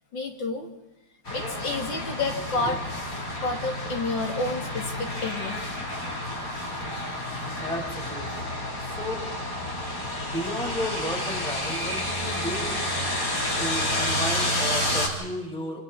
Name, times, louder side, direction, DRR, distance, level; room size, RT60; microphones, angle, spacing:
voice 1, 0.1-0.7 1.3-2.8 3.4-5.6, left 3 dB, 75° left, 3 dB, 3.3 m, -30 dB
sound 1, 1.2-15.1, left 1 dB, 45° left, 4.1 m, -30 dB
voice 2, 7.6-9.3 10.2-12.8 13.6-15.8, equal, ahead, 0 dB, 4.8 m, -33 dB
28.0 x 27.5 x 4.2 m, 0.98 s
omnidirectional pair, 2.0 m